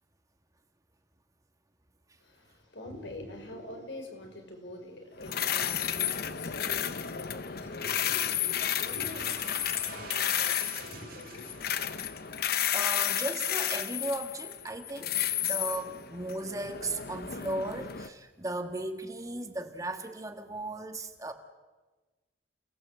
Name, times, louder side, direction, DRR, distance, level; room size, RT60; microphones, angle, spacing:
voice 1, 2.2-12.1, left 1 dB, 75° left, 3 dB, 5.4 m, -45 dB
sound 1, 5.2-18.1, left 10 dB, 55° left, 0.9 m, -32 dB
sound 2, 7.1-12.4, right 6 dB, 50° right, 2.8 m, -48 dB
voice 2, 12.7-15.1 15.4-21.3, right 2 dB, 20° right, 6 dB, 1.7 m, -36 dB
29.0 x 18.5 x 7.8 m, 1.2 s
head